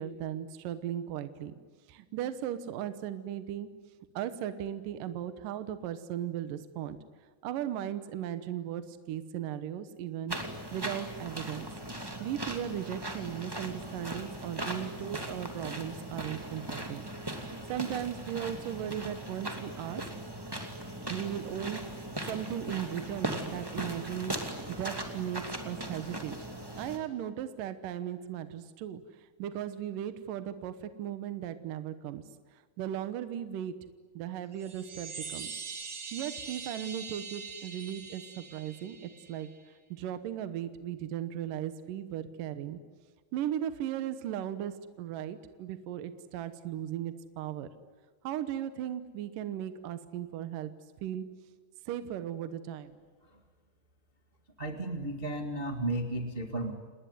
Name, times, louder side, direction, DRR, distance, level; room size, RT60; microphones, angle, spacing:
voice 1, 0.0-1.5 1.9-3.7 4.1-7.0 7.4-10.4 10.7-11.7 12.2-17.0 17.3-20.0 21.1-21.8 22.3-24.4 24.7-26.3 26.8-29.0 29.4-32.2 32.5-33.8 34.2-35.5 36.1-39.5 39.9-42.8 43.3-47.7 48.2-50.7 51.0-51.3 51.9-53.0, right 10 dB, 70° right, 11 dB, 2.4 m, -37 dB
sound 1, 10.3-27.0, right 1 dB, 10° right, 1.5 m, -39 dB
sound 2, 34.5-39.6, right 5 dB, 45° right, 3.8 m, -43 dB
voice 2, 54.6-56.7, right 1 dB, 90° right, 4 dB, 0.5 m, -33 dB
29.0 x 20.0 x 9.5 m, 1.5 s
omnidirectional pair, 4.6 m